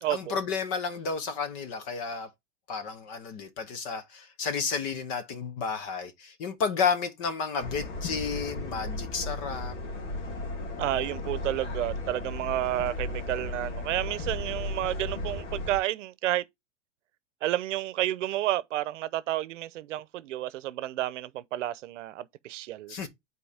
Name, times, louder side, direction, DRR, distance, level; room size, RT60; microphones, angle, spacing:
voice 1, 0.1-2.3 2.7-9.7 22.9-23.1, left 5 dB, 30° left, 0.8 m, -31 dB
sound 1, 7.6-15.8, left 2 dB, 75° left, 2.2 m, -35 dB
voice 2, 10.8-16.4 17.4-22.9, right 14 dB, 80° right, 0.8 m, -31 dB
8.8 x 4.2 x 3.4 m
supercardioid pair, 180°, 36 cm